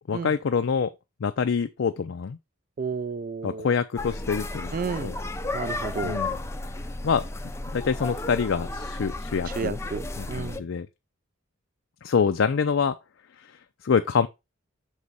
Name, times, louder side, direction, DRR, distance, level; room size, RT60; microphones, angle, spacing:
voice 1, 0.1-0.9 1.2-2.4 3.4-4.7 5.0-5.2 6.0-6.4 7.0-7.2 7.7-9.8 10.2-10.9 12.0-13.0 13.8-14.3, left 6 dB, 70° left, 0.4 m, -25 dB
voice 2, 2.8-3.7 4.7-5.1 5.5-6.2 9.6-10.6, right 5 dB, 45° right, 0.4 m, -32 dB
sound 1, 4.0-10.6, left 2 dB, 15° left, 0.5 m, -33 dB
6.1 x 4.8 x 4.0 m
head